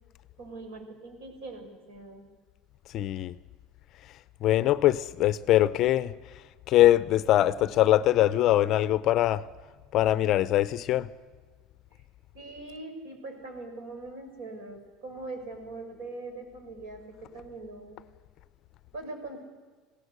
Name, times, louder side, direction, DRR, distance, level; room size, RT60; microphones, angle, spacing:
voice 1, 0.4-2.3 5.9-6.0 12.3-18.0 18.9-19.4, right 2 dB, 70° right, 5.9 m, -42 dB
voice 2, 2.9-3.4 4.4-6.1 6.7-9.5 9.9-11.1, left 13 dB, 40° left, 0.5 m, -22 dB
20.0 x 17.0 x 8.1 m
cardioid pair, 165°, 0 cm